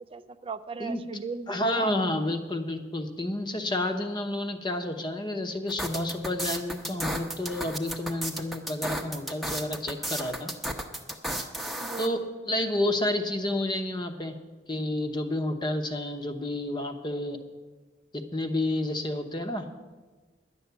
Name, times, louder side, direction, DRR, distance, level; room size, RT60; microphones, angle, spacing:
voice 1, 0.0-2.0 11.8-12.1, right 5 dB, 30° right, 11 dB, 0.4 m, -38 dB
voice 2, 1.5-10.5 12.0-14.4 14.7-17.4 18.3-19.7, left 1 dB, 25° left, 7 dB, 0.9 m, -30 dB
sound 1, 5.7-12.1, right 1 dB, ahead, 0.8 m, -33 dB
11.0 x 6.9 x 9.5 m, 1.3 s
head